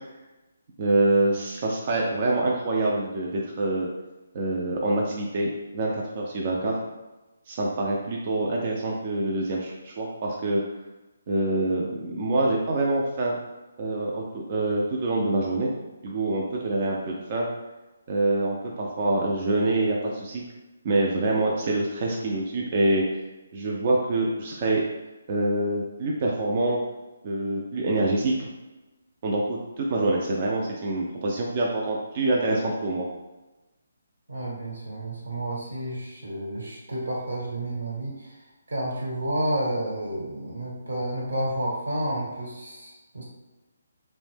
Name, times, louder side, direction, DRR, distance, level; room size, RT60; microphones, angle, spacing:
voice 1, 0.8-3.9 4.3-6.7 7.5-10.6 11.3-13.3 13.8-15.7 16.0-17.5 18.1-20.4 20.8-23.0 23.5-24.8 25.3-26.8 27.2-28.5 29.2-33.1, right 2 dB, 40° right, -2 dB, 0.3 m, -25 dB
voice 2, 34.3-38.4 38.7-43.2, right 1 dB, 85° right, -4 dB, 1.0 m, -30 dB
2.6 x 2.0 x 3.3 m, 1.1 s
hypercardioid pair, 155°, 0 cm